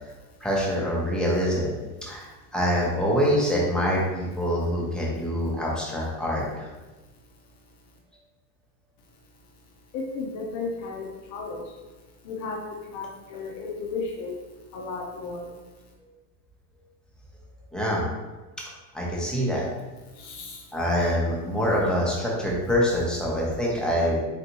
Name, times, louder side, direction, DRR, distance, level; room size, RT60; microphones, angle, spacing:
voice 1, 0.4-1.7 2.1-2.3 2.5-6.7 17.7-18.0 18.9-19.6 20.7-24.2, equal, ahead, -5 dB, 0.8 m, -25 dB
voice 2, 9.9-11.6 12.2-12.6 12.9-14.4 14.7-15.5 20.2-20.6, left 4 dB, 35° left, -1 dB, 0.7 m, -34 dB
4.0 x 3.2 x 2.9 m, 1.2 s
hypercardioid pair, 115°, 49 cm